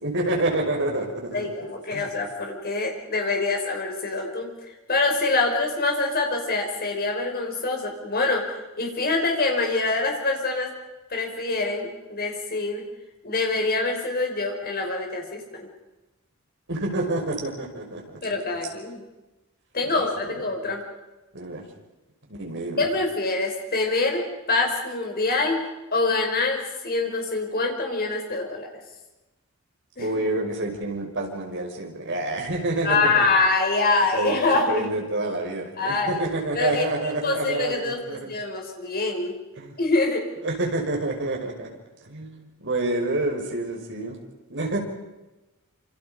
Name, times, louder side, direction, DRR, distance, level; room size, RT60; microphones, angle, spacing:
voice 1, 0.0-1.5 1.9-2.1 16.7-18.2 19.9-20.4 21.3-21.7 22.3-22.9 30.0-33.2 34.1-34.4 34.7-38.3 39.6-39.8 40.4-41.7 42.0-44.2 44.5-44.8, right 2 dB, 60° right, 2 dB, 5.6 m, -28 dB
voice 2, 1.3-4.5 4.9-8.4 8.8-10.7 11.1-12.8 13.2-15.7 18.2-19.0 19.7-20.8 22.8-28.7 30.0-30.2 32.8-34.9 35.8-36.2 36.5-39.4 39.8-40.2, left 3 dB, 45° left, 2 dB, 5.6 m, -25 dB
28.0 x 27.5 x 5.3 m, 1.1 s
head